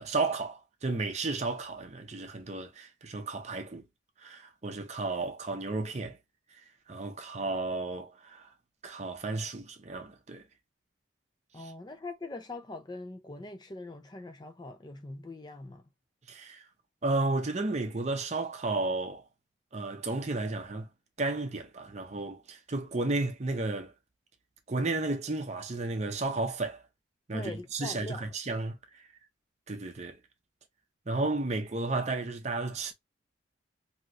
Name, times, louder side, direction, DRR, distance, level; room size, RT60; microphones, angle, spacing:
voice 1, 0.0-3.8 4.2-6.2 6.5-8.5 8.8-10.4 16.3-16.7 17.0-19.2 19.7-20.9 21.2-23.9 24.7-26.8 27.3-29.1 29.7-30.2 31.1-32.9, right 3 dB, 35° right, 0.6 m, -33 dB
voice 2, 11.5-15.8 27.3-28.4, left 2 dB, 20° left, 0.4 m, -42 dB
3.0 x 2.8 x 2.4 m
head